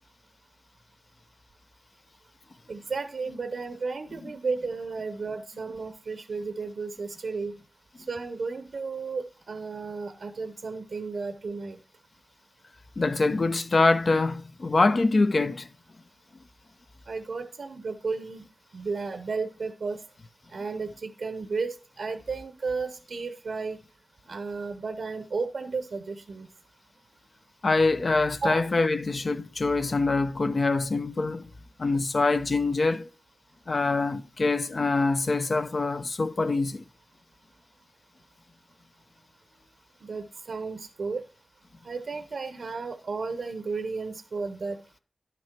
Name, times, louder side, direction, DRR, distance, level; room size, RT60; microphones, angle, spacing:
voice 1, 2.7-7.6 8.1-11.8 17.1-18.4 18.7-20.0 20.5-23.8 24.3-26.5 28.4-28.6 40.0-41.2 41.8-44.8, right 4 dB, 85° right, 0.8 m, -33 dB
voice 2, 13.0-15.7 27.6-31.5 31.8-33.1 33.7-36.8, left 3 dB, 55° left, 0.6 m, -24 dB
10.5 x 6.1 x 4.4 m
wide cardioid pair, 100°, 0 cm